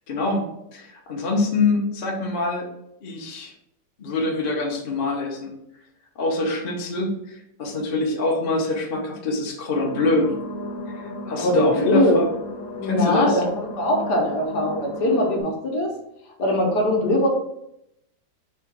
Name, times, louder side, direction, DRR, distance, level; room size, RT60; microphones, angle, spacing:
voice 1, 0.1-2.7 3.0-3.5 4.0-5.5 6.1-10.3 10.9-12.3 12.8-13.4, left 2 dB, 40° left, -1 dB, 0.8 m, -25 dB
sound 1, 9.8-15.4, left 1 dB, 80° left, 1.6 m, -35 dB
voice 2, 11.4-12.2 12.8-15.9 16.4-17.3, left 1 dB, 65° left, 0 dB, 1.5 m, -21 dB
4.7 x 2.5 x 4.4 m, 0.80 s
omnidirectional pair, 2.0 m